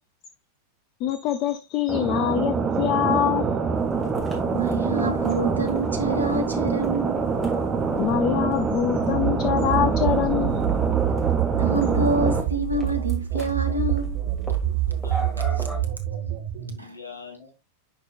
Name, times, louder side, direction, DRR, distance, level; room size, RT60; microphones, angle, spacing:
voice 1, 1.0-3.4 8.0-10.7, left 11 dB, 40° left, 0.5 m, -24 dB
sound 1, 1.9-12.4, right 5 dB, 15° right, 1.0 m, -25 dB
sound 2, 3.8-15.8, left 1 dB, 10° left, 2.4 m, -40 dB
voice 2, 4.5-7.3 11.5-14.3 16.8-17.0, right 2 dB, 80° right, 1.2 m, -27 dB
sound 3, 9.1-16.7, right 12 dB, 50° right, 1.2 m, -26 dB
voice 3, 15.0-17.5, left 5 dB, 80° left, 3.1 m, -44 dB
10.5 x 4.4 x 2.4 m
figure-of-eight pair, 90°, 0 cm